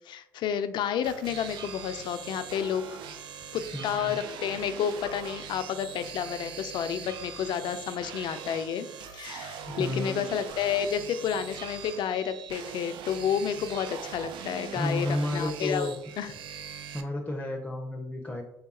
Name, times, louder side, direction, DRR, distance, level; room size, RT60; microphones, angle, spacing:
voice 1, 0.1-3.0 3.5-8.9 9.1-15.9 16.2-16.3, left 8 dB, 60° left, 11 dB, 0.4 m, -30 dB
sound 1, 1.0-17.0, right 7 dB, 65° right, 0.4 m, -41 dB
voice 2, 3.7-4.2 9.7-10.3 14.7-16.0 16.9-18.4, left 1 dB, 15° left, 1 dB, 0.6 m, -32 dB
3.4 x 2.3 x 4.1 m, 0.79 s
hypercardioid pair, 55°, 9 cm